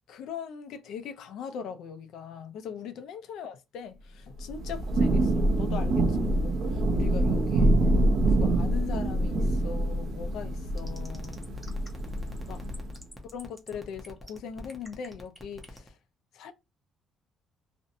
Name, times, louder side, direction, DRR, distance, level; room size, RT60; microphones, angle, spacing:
voice 1, 0.1-7.8 8.2-11.5 12.5-12.6 13.3-16.0 16.3-16.5, left 7 dB, 70° left, 0.4 m, -40 dB
Thunder / Rain, 4.4-13.0, right 1 dB, 50° right, 0.6 m, -26 dB
sound 1, 10.8-15.9, equal, ahead, 0.5 m, -47 dB
2.5 x 2.1 x 2.6 m
cardioid pair, 165°, 0 cm